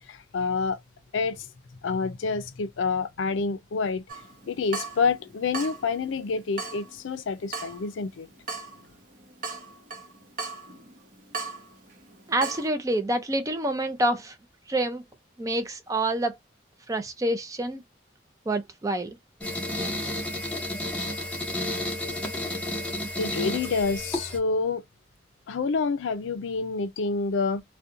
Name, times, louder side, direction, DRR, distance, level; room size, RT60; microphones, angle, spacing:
voice 1, 0.1-0.8 1.1-1.5 1.8-4.0 4.5-8.3 23.2-24.8 25.5-27.6, left 4 dB, 85° left, 0.4 m, -28 dB
Water tap faucet / Drip, 4.1-12.7, right 4 dB, 45° right, 0.8 m, -39 dB
voice 2, 12.3-14.4 14.7-15.0 15.4-16.4 16.9-17.8 18.5-19.2, right 1 dB, 15° right, 0.4 m, -27 dB
sound 1, 19.4-24.4, left 1 dB, 5° left, 0.7 m, -31 dB
2.7 x 2.1 x 2.5 m
head